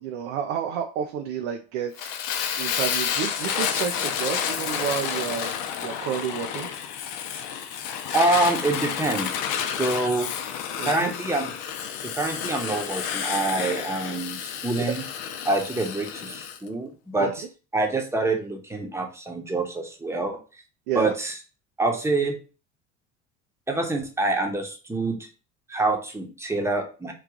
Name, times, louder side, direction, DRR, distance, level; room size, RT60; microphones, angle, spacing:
voice 1, 0.0-2.1 2.6-6.8 10.8-11.1 17.2-17.3 20.9-21.1, right 8 dB, 65° right, 4 dB, 0.6 m, -30 dB
Fire, 2.0-16.6, left 8 dB, 60° left, 0.6 m, -30 dB
voice 2, 8.1-9.4 9.8-10.3 10.8-11.5 12.0-15.0 15.4-17.4 17.7-20.4 20.9-21.4 21.8-22.4 23.7-25.3 25.7-27.1, right 2 dB, 10° right, 3 dB, 0.9 m, -26 dB
3.2 x 2.4 x 3.7 m, 0.34 s
hypercardioid pair, 80°, 35 cm